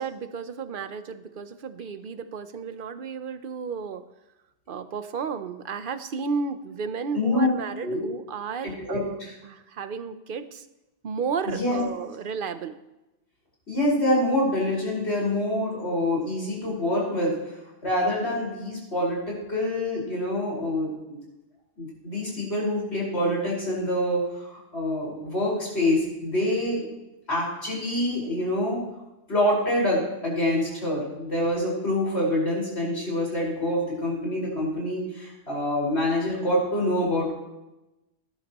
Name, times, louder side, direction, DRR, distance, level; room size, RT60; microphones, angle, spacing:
voice 1, 0.0-4.0 4.7-9.2 9.4-10.6 11.0-12.8, right 5 dB, 55° right, 11 dB, 0.8 m, -33 dB
voice 2, 7.1-7.5 7.8-8.0 8.6-9.3 11.4-11.8 13.7-21.2 21.8-26.9 27.3-28.8 29.3-37.3, left 1 dB, 70° left, -4 dB, 5.3 m, -26 dB
18.5 x 11.0 x 3.0 m, 0.98 s
omnidirectional pair, 1.1 m